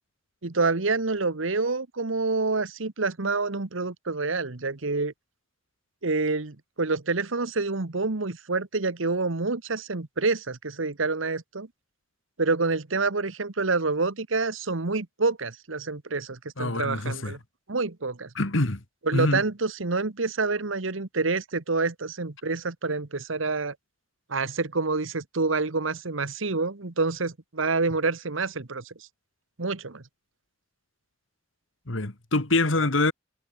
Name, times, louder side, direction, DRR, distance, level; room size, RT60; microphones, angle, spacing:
voice 1, 0.4-5.1 6.0-11.7 12.4-17.4 17.7-18.3 19.0-23.7 24.3-28.9 29.6-30.0, right 3 dB, 80° right, 1.4 m, -27 dB
voice 2, 16.6-17.3 18.4-18.8 19.1-19.4 31.9-33.1, left 2 dB, 80° left, 2.2 m, -25 dB
head